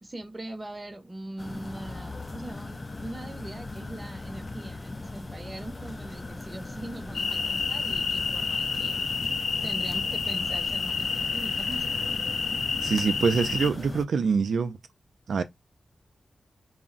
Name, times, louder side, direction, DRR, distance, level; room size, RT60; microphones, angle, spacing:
voice 1, 0.0-9.1 9.6-12.2, right 1 dB, 20° right, 0.6 m, -41 dB
sound 1, 1.4-14.1, left 2 dB, 30° left, 0.3 m, -39 dB
sound 2, 7.1-13.7, left 5 dB, 85° left, 0.6 m, -29 dB
voice 2, 12.8-14.8 15.3-15.4, right 5 dB, 80° right, 0.3 m, -25 dB
2.5 x 2.0 x 3.7 m
wide cardioid pair, 110°, 0 cm